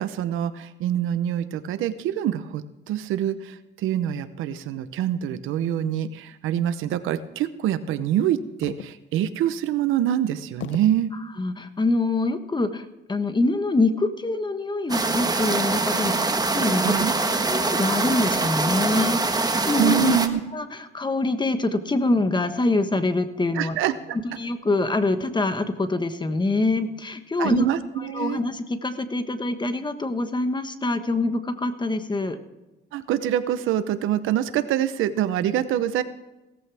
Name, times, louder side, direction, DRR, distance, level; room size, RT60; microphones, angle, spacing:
voice 1, 0.0-11.1 16.0-16.1 16.8-17.2 19.8-20.4 23.5-24.2 27.4-28.4 32.9-36.0, right 11 dB, 90° right, 12 dB, 0.8 m, -25 dB
sound 1, 8.6-9.2 9.8-9.9 10.6-11.1 11.9-12.3, left 10 dB, 75° left, 0.8 m, -39 dB
voice 2, 11.4-17.0 17.4-20.2 20.5-23.8 24.4-27.7 28.0-32.4, left 2 dB, 20° left, 9 dB, 1.3 m, -25 dB
sound 2, 14.9-20.3, right 3 dB, 20° right, 1.3 m, -24 dB
16.5 x 14.5 x 3.5 m, 1.0 s
cardioid pair, 90°, 20 cm